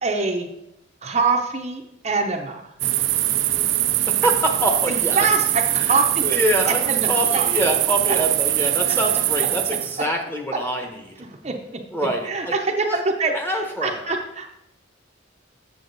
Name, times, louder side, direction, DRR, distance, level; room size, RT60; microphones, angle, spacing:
voice 1, 0.0-0.5 1.0-2.7 4.9-6.2 6.7-7.5 11.2-11.5 12.2-14.5, right 3 dB, 35° right, 2 dB, 0.7 m, -24 dB
sound 1, 2.8-10.0, right 14 dB, 70° right, 0.5 m, -22 dB
voice 2, 4.1-5.2 5.7-11.1 11.9-13.0 13.3-14.1, equal, 10° left, 2 dB, 1.0 m, -25 dB
7.6 x 7.2 x 3.9 m, 0.82 s
head